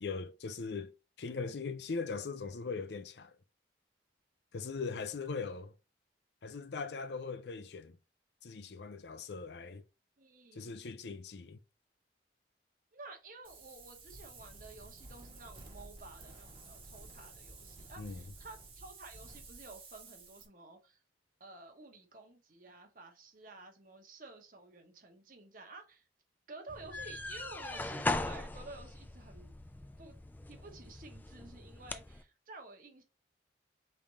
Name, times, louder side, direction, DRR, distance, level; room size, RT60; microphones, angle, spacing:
voice 1, 0.0-0.9 1.2-3.3 4.5-5.7 6.4-8.0 8.4-9.8 10.6-11.6 18.0-18.2, left 4 dB, 70° left, 0.5 m, -40 dB
voice 2, 10.2-10.8 12.9-21.0 21.4-26.1 26.5-29.5 30.0-30.2 30.5-33.0, right 2 dB, 50° right, 1.0 m, -52 dB
Wind, 13.4-20.5, right 3 dB, 30° right, 1.0 m, -52 dB
sound 1, 26.7-32.2, left 2 dB, 10° left, 0.3 m, -40 dB
3.6 x 3.4 x 4.1 m
head